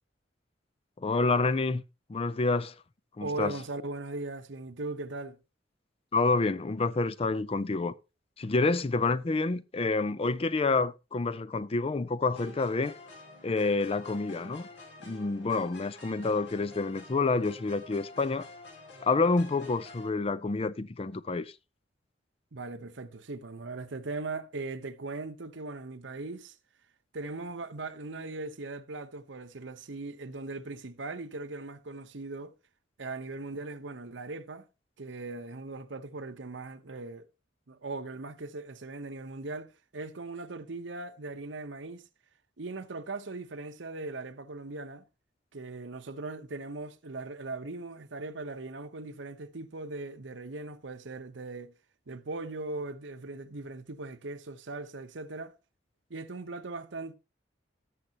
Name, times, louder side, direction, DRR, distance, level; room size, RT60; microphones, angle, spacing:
voice 1, 1.0-1.8 2.1-2.7 3.2-3.5 6.1-7.9 8.4-12.9 13.4-14.7 15.0-18.5 19.0-21.5, left 3 dB, 30° left, 0.5 m, -28 dB
voice 2, 3.2-5.4 22.5-26.6 27.1-32.5 33.0-34.7 35.0-37.3 37.7-42.1 42.6-45.0 45.5-51.7 52.1-55.6 56.1-57.1, right 3 dB, 85° right, 0.9 m, -39 dB
sound 1, 12.4-20.1, left 2 dB, 70° left, 2.4 m, -49 dB
18.0 x 6.6 x 2.9 m
head